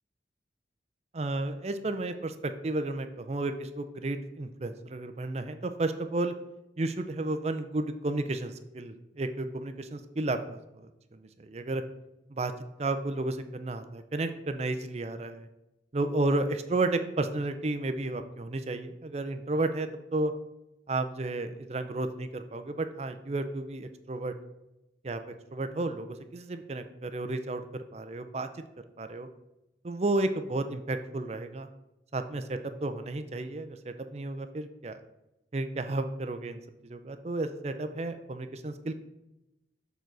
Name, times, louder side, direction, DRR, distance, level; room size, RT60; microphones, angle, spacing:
voice 1, 1.1-6.3 6.8-11.8 12.3-12.5 12.8-15.5 15.9-20.3 20.9-24.3 25.0-25.2 25.5-28.5 29.0-29.3 29.8-31.7 32.1-35.0 35.5-38.9, right 2 dB, 35° right, 9 dB, 0.5 m, -32 dB
6.7 x 4.0 x 6.2 m, 0.93 s
head